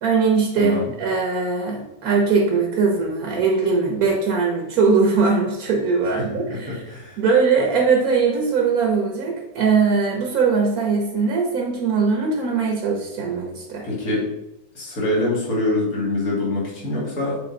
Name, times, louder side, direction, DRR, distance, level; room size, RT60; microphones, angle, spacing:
voice 1, 0.0-6.8 7.2-13.8, right 4 dB, 75° right, 0 dB, 1.5 m, -20 dB
voice 2, 0.6-0.9 6.0-7.2 13.8-14.3 14.7-17.4, left 2 dB, 75° left, -5 dB, 2.7 m, -25 dB
6.9 x 4.0 x 3.9 m, 0.94 s
omnidirectional pair, 1.6 m